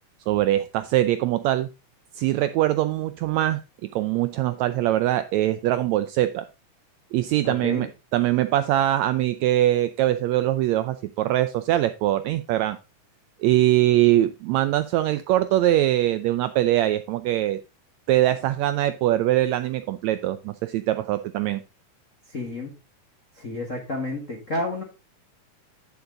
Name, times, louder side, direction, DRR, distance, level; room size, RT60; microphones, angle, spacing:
voice 1, 0.3-1.7 2.1-3.6 3.9-6.5 7.1-12.8 13.4-17.6 18.1-21.6, right 14 dB, 80° right, 12 dB, 1.6 m, -22 dB
voice 2, 7.4-7.9 22.3-22.7 23.3-24.8, left 1 dB, 40° left, 0 dB, 1.1 m, -30 dB
9.5 x 7.1 x 3.8 m, 0.29 s
omnidirectional pair, 3.6 m